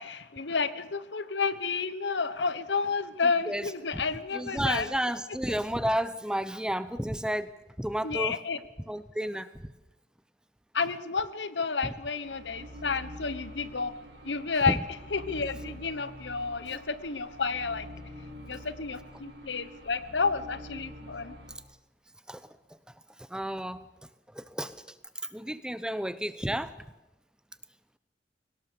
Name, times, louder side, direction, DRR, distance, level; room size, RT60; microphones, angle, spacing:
voice 1, 0.0-4.9 8.0-8.6 10.7-13.9 14.2-14.8 15.1-17.9 18.5-21.4, left 4 dB, 85° left, 14 dB, 1.2 m, -31 dB
voice 2, 3.5-4.0 4.3-7.5 7.8-8.4 8.9-9.5 11.8-11.9 14.7-14.8 22.3-22.4 23.3-23.8 24.3-24.8 25.3-26.7, equal, 5° right, 14 dB, 0.8 m, -31 dB
sound 1, 12.2-21.6, equal, 75° right, 4.6 m, -46 dB
22.5 x 18.0 x 6.9 m, 0.97 s
head